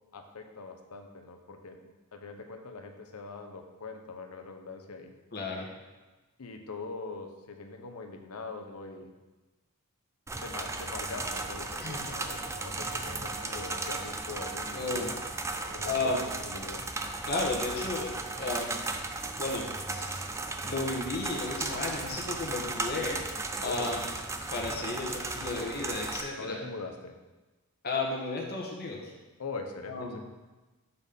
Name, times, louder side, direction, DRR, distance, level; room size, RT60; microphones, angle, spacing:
voice 1, 0.1-5.1 6.4-9.1 10.4-14.9 15.6-16.8 23.6-23.9 26.4-27.1 29.4-30.2, left 3 dB, 75° left, 4 dB, 0.8 m, -42 dB
voice 2, 5.3-5.7 11.8-12.1 14.7-15.1 15.8-16.2 17.2-18.9 19.4-20.2 20.6-23.2 23.6-24.0 24.5-26.6 27.8-29.1 29.9-30.2, left 3 dB, 45° left, -1 dB, 1.3 m, -33 dB
sound 1, 10.3-26.2, right 3 dB, 15° right, 0.4 m, -36 dB
7.0 x 4.2 x 5.2 m, 1.2 s
head